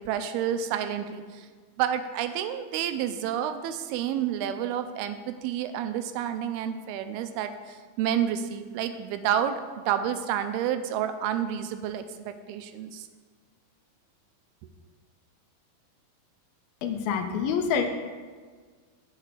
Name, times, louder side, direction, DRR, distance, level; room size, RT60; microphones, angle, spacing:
voice 1, 0.0-1.5 1.8-13.1, right 9 dB, 85° right, 9 dB, 2.6 m, -30 dB
voice 2, 16.8-17.9, left 6 dB, 75° left, 6 dB, 2.5 m, -26 dB
8.8 x 6.0 x 8.2 m, 1.5 s
omnidirectional pair, 4.4 m